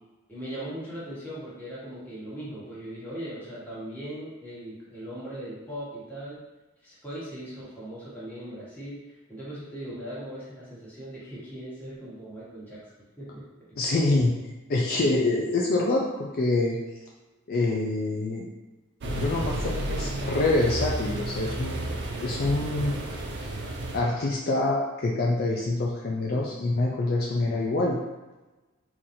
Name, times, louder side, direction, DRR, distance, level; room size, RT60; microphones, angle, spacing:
voice 1, 0.3-6.4 6.8-12.8 13.2-13.4, right 1 dB, 10° left, -9 dB, 1.3 m, -39 dB
voice 2, 13.8-14.3 14.7-16.8 17.5-18.5 19.0-21.9 22.2-23.0 23.4-23.5 23.9-28.0, left 2 dB, 50° left, -2 dB, 0.4 m, -26 dB
sound 1, 19.0-24.0, right 1 dB, 55° right, 0.5 m, -32 dB
3.9 x 2.9 x 2.6 m, 1.1 s
head